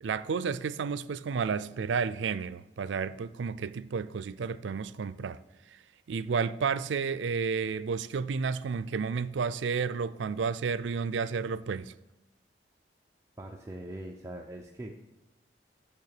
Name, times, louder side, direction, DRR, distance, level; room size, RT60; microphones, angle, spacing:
voice 1, 0.0-5.4 6.1-11.9, right 5 dB, 90° right, 0.4 m, -31 dB
voice 2, 13.4-15.0, right 1 dB, 15° right, 0.5 m, -42 dB
6.7 x 5.9 x 6.6 m
head